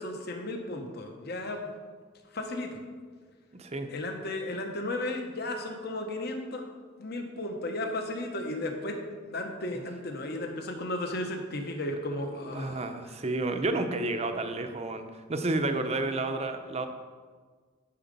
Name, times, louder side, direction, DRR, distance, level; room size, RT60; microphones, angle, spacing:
voice 1, 0.0-1.7 2.3-2.8 3.9-6.7 7.0-9.0 9.2-12.9, left 1 dB, 50° left, 4 dB, 1.0 m, -34 dB
voice 2, 3.5-3.9 9.7-9.8 12.5-16.9, right 2 dB, 30° right, 7 dB, 0.7 m, -31 dB
10.0 x 5.0 x 5.3 m, 1.5 s
head